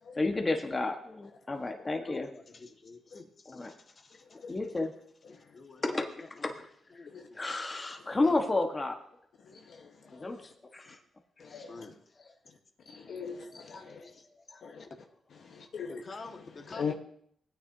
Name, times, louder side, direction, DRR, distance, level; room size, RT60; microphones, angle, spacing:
voice 1, 0.1-2.3 3.5-3.7 4.5-4.9 5.8-6.7 7.3-9.0 10.1-11.0 13.1-13.2 13.8-13.9, left 2 dB, 25° left, 4 dB, 1.3 m, -32 dB
voice 2, 1.8-4.4 5.3-6.6 6.9-7.4 11.4-12.3 13.5-14.1 14.5-14.9 15.9-16.9, left 3 dB, 40° left, 4 dB, 1.6 m, -49 dB
voice 3, 9.4-10.5 10.9-11.0 11.4-11.8 12.9-14.0 14.6-14.8 15.4-16.0 16.7-16.9, left 6 dB, 65° left, 3 dB, 1.1 m, -41 dB
17.5 x 9.5 x 2.7 m, 0.65 s
cardioid pair, 75°, 0 cm